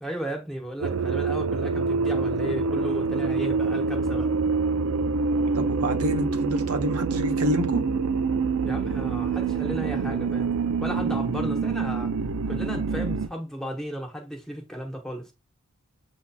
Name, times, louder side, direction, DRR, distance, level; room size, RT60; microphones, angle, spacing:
voice 1, 0.0-4.3 8.6-10.5 10.8-12.1 12.5-15.3, equal, ahead, 0.9 m, -34 dB
sound 1, 0.8-13.3, right 4 dB, 65° right, 0.4 m, -26 dB
voice 2, 5.5-7.8, right 1 dB, 85° right, 0.8 m, -27 dB
7.2 x 2.8 x 2.2 m
head